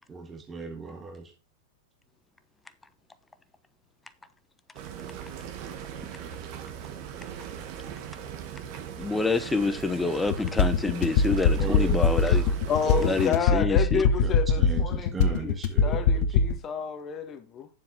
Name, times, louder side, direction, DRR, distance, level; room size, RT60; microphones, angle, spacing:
voice 1, 0.1-1.3 11.5-12.0 12.8-13.1 14.2-16.4, right 4 dB, 20° right, 1.4 m, -37 dB
sound 1, 4.7-13.3, right 8 dB, 50° right, 1.6 m, -39 dB
voice 2, 9.0-12.6 13.0-14.0, left 3 dB, 10° left, 1.0 m, -27 dB
sound 2, 10.3-16.5, left 5 dB, 55° left, 1.1 m, -22 dB
voice 3, 12.7-17.7, left 7 dB, 30° left, 1.3 m, -30 dB
9.5 x 7.4 x 3.7 m
hypercardioid pair, 105°, 0 cm